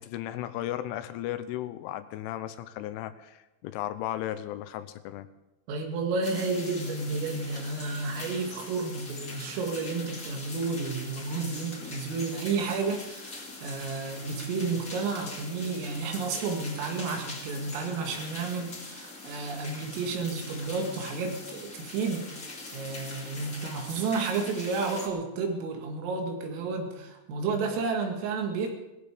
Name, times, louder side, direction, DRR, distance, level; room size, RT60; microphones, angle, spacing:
voice 1, 0.0-5.3, left 13 dB, 80° left, 11 dB, 3.2 m, -35 dB
voice 2, 5.7-28.7, right 4 dB, 90° right, 3 dB, 4.7 m, -31 dB
sound 1, 6.2-25.1, left 2 dB, 35° left, 1.2 m, -42 dB
18.5 x 14.5 x 5.1 m, 1.0 s
omnidirectional pair, 5.7 m